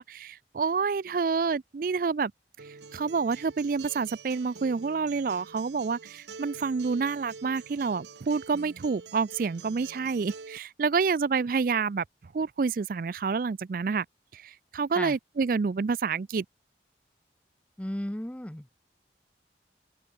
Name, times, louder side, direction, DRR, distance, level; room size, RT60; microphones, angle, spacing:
voice 1, 0.0-2.3 2.6-14.1 14.3-16.4, right 5 dB, 50° right, 0.4 m, -28 dB
Acoustic guitar, 2.6-10.6, right 5 dB, 75° right, 0.9 m, -46 dB
voice 2, 17.8-18.7, left 1 dB, 5° left, 0.6 m, -34 dB
open air
head